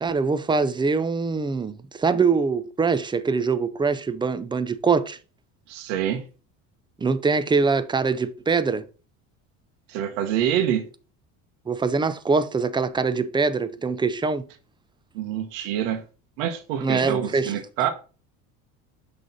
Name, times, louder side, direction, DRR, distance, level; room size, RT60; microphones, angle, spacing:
voice 1, 0.0-5.2 7.0-8.8 11.7-14.4 16.8-17.6, right 4 dB, 10° right, 0.4 m, -23 dB
voice 2, 5.7-6.2 9.9-10.9 15.1-16.0 16.4-17.9, right 10 dB, 90° right, 1.2 m, -26 dB
6.1 x 3.3 x 5.3 m
supercardioid pair, 110°, 39 cm